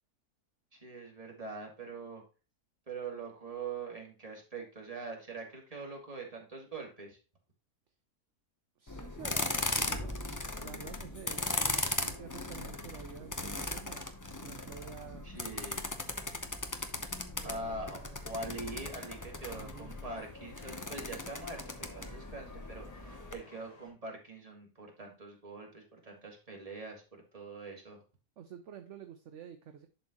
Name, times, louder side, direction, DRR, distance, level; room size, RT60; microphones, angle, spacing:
voice 1, 0.7-2.2 2.9-7.2 15.2-15.9 17.4-18.0 18.2-28.0, right 3 dB, 25° right, -1 dB, 2.3 m, -43 dB
voice 2, 8.8-14.1 14.4-15.3 17.3-18.2 19.5-19.9 28.4-29.9, right 8 dB, 60° right, 7 dB, 0.9 m, -49 dB
sound 1, 8.9-23.3, left 2 dB, 20° left, 0.5 m, -38 dB
sound 2, 17.7-23.9, left 2 dB, 50° left, 2.1 m, -58 dB
11.0 x 4.2 x 2.9 m, 0.35 s
omnidirectional pair, 1.6 m